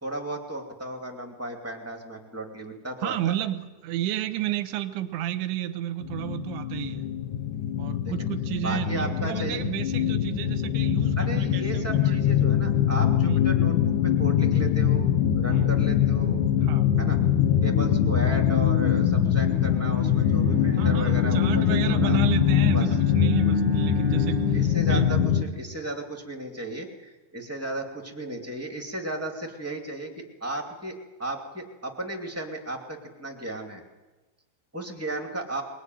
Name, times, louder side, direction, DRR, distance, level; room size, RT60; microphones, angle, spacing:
voice 1, 0.0-3.3 8.0-8.1 8.6-9.6 11.2-16.5 17.0-17.2 17.6-22.2 22.7-23.0 24.5-33.8 34.7-35.6, right 1 dB, 5° right, 1 dB, 1.3 m, -35 dB
voice 2, 3.0-7.1 7.8-12.3 13.2-13.4 15.5-15.7 16.6-16.9 20.8-24.6 24.9-25.1, right 13 dB, 90° right, 9 dB, 3.3 m, -32 dB
sound 1, 6.0-25.4, left 9 dB, 70° left, 2.0 m, -23 dB
Bowed string instrument, 19.6-24.9, right 10 dB, 55° right, 1.9 m, -39 dB
22.5 x 20.5 x 9.4 m, 1.1 s
omnidirectional pair, 5.2 m